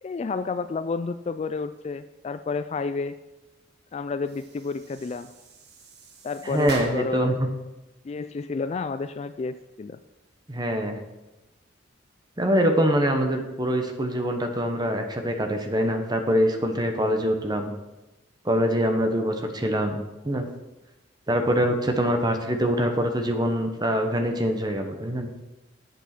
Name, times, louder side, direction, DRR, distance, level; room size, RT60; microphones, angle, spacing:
voice 1, 0.0-3.2 3.9-5.3 6.2-7.4 8.0-10.0, left 4 dB, 35° left, 12 dB, 0.3 m, -30 dB
sound 1, 4.2-7.3, right 2 dB, 60° right, 1.3 m, -41 dB
voice 2, 6.4-7.5 10.5-11.0 12.4-17.7 18.4-20.5 21.3-25.3, equal, 20° right, 5 dB, 1.1 m, -24 dB
8.1 x 7.0 x 6.0 m, 1.0 s
head